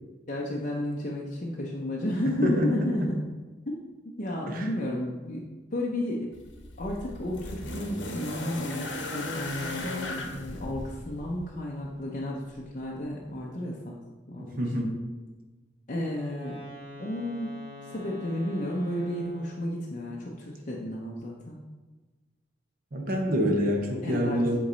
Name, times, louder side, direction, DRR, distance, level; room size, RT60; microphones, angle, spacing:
voice 1, 0.3-3.2 3.7-3.8 4.2-6.4 6.8-14.0 14.3-14.6 15.9-16.6 17.0-17.6 17.9-21.6 24.0-24.4, left 1 dB, 45° left, -3 dB, 0.6 m, -32 dB
voice 2, 2.3-3.1 4.5-4.7 14.4-14.9 22.9-24.6, equal, 50° right, 1 dB, 0.9 m, -27 dB
sound 1, 6.3-11.5 12.6-12.7, left 1 dB, 75° left, 0.9 m, -36 dB
Wind instrument woodwind instrument, 16.1-19.8, left 2 dB, 10° left, 1.8 m, -45 dB
8.3 x 3.1 x 3.9 m, 1.2 s
head